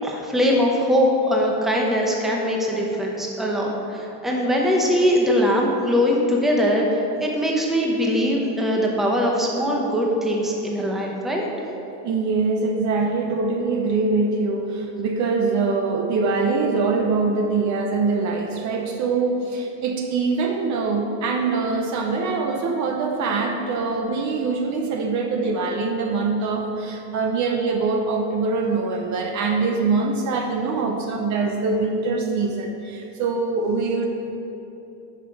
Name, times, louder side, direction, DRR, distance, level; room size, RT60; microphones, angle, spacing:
voice 1, 0.0-11.5, equal, ahead, -1 dB, 0.8 m, -21 dB
voice 2, 12.0-34.1, right 4 dB, 35° right, 3 dB, 0.7 m, -23 dB
10.0 x 5.8 x 4.7 m, 3.0 s
supercardioid pair, 145°, 49 cm